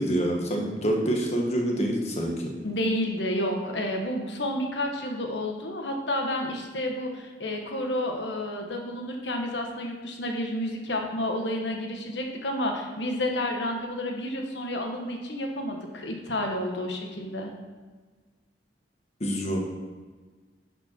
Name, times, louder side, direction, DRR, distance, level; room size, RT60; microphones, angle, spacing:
voice 1, 0.0-2.5 19.2-19.6, right 1 dB, 40° left, 0 dB, 1.4 m, -26 dB
voice 2, 2.6-17.5, left 1 dB, 85° left, 2 dB, 1.4 m, -30 dB
10.5 x 5.2 x 4.5 m, 1.4 s
head